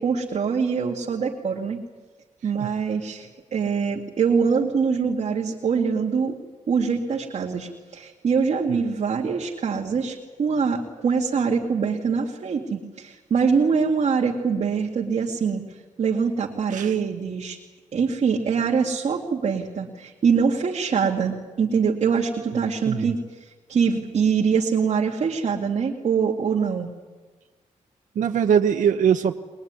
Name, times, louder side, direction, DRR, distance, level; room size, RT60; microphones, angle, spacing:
voice 1, 0.0-1.8 2.4-6.4 6.7-17.6 17.9-26.9, right 6 dB, 55° right, -2 dB, 2.2 m, -24 dB
voice 2, 22.5-23.1 28.1-29.4, right 8 dB, 75° right, 5 dB, 0.9 m, -22 dB
22.5 x 21.5 x 9.5 m, 1.3 s
wide cardioid pair, 150°, 13 cm